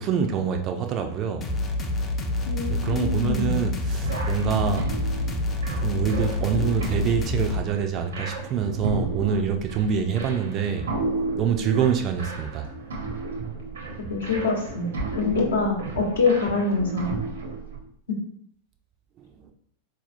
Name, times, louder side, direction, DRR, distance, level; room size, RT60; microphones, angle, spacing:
voice 1, 0.0-1.5 2.7-4.9 5.8-10.9 11.4-12.7, right 7 dB, 35° right, 5 dB, 0.4 m, -26 dB
sound 1, 1.4-7.6, left 2 dB, 25° left, 0.5 m, -27 dB
voice 2, 2.5-3.5 14.1-17.1 18.1-18.2, left 4 dB, 65° left, -1 dB, 0.9 m, -25 dB
sound 2, 4.0-17.8, right 3 dB, 65° right, 0.7 m, -33 dB
4.1 x 2.7 x 2.5 m, 0.67 s
figure-of-eight pair, 90°, 0 cm